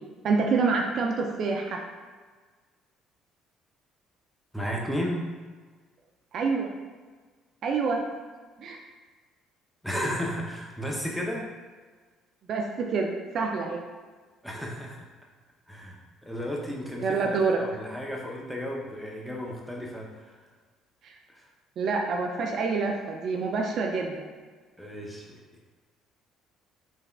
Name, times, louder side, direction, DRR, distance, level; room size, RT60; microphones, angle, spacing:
voice 1, 0.2-1.8 6.3-6.7 7.6-8.1 8.6-8.8 12.5-13.1 13.3-13.8 17.0-17.6 21.0-21.1 21.8-24.3, right 4 dB, 60° right, 2 dB, 0.3 m, -27 dB
voice 2, 4.5-5.3 9.8-11.5 14.4-15.1 15.7-20.4 21.3-21.5 24.8-25.4, equal, ahead, -2 dB, 0.6 m, -34 dB
3.5 x 2.2 x 2.3 m, 1.4 s
supercardioid pair, 70°, 0 cm